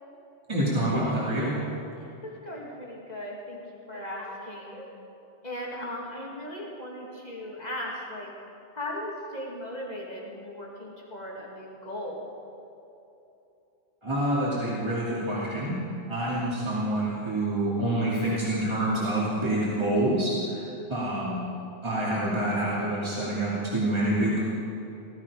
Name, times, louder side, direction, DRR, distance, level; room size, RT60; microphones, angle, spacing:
voice 1, 0.5-1.5 14.0-15.7 16.1-21.5 21.8-24.4, right 1 dB, 25° right, -8 dB, 2.8 m, -27 dB
voice 2, 2.2-3.6 3.9-5.0 5.4-8.3 8.7-12.3, left 1 dB, 40° left, -3 dB, 2.6 m, -37 dB
18.5 x 13.5 x 5.0 m, 2.8 s
omnidirectional pair, 1.1 m